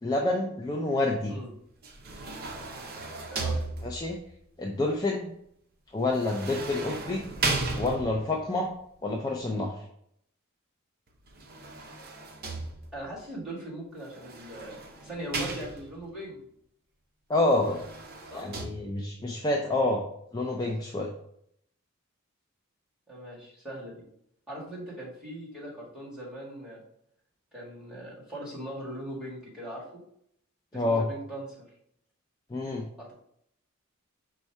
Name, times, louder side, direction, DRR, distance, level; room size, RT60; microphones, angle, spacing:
voice 1, 0.0-1.3 3.8-4.2 4.6-5.3 5.9-7.2 7.8-8.7 9.0-9.7 17.3-17.8 18.3-20.0 20.3-21.1 30.7-31.1 32.5-32.9, left 2 dB, 20° left, -1 dB, 0.4 m, -28 dB
sound 1, 1.8-4.3 6.1-8.4 11.3-13.1 14.1-16.1 17.5-18.7, right 3 dB, 45° right, 0.7 m, -35 dB
voice 2, 12.9-14.8 15.0-16.5 18.3-18.5 23.1-23.9 24.5-26.8 27.5-30.0 30.7-31.6 33.0-33.1, right 1 dB, 5° right, -7 dB, 1.7 m, -40 dB
5.3 x 2.3 x 4.4 m, 0.71 s
head